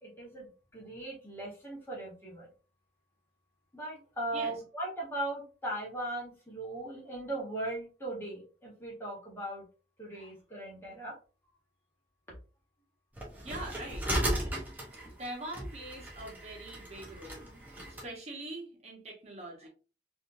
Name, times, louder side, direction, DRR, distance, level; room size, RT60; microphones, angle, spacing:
voice 1, 0.0-2.5 3.7-9.6 10.0-11.1, right 1 dB, 15° left, -3 dB, 1.3 m, -38 dB
sound 1, 13.2-18.1, right 1 dB, 10° right, 0.7 m, -36 dB
voice 2, 13.4-14.1 15.2-17.8 18.0-19.7, right 1 dB, 35° right, 0 dB, 1.1 m, -43 dB
3.4 x 2.7 x 2.6 m, 0.34 s
head